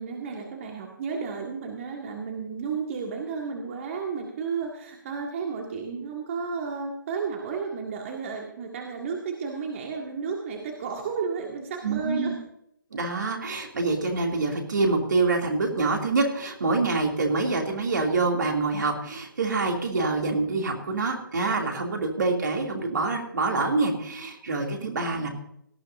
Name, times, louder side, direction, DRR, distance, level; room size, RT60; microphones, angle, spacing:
voice 1, 0.0-12.3 24.8-25.1, right 5 dB, 40° right, 1 dB, 1.9 m, -33 dB
voice 2, 11.8-12.3 12.9-25.3, right 3 dB, 60° right, 2 dB, 2.9 m, -26 dB
18.0 x 14.0 x 2.7 m, 0.74 s
figure-of-eight pair, 135°, 11 cm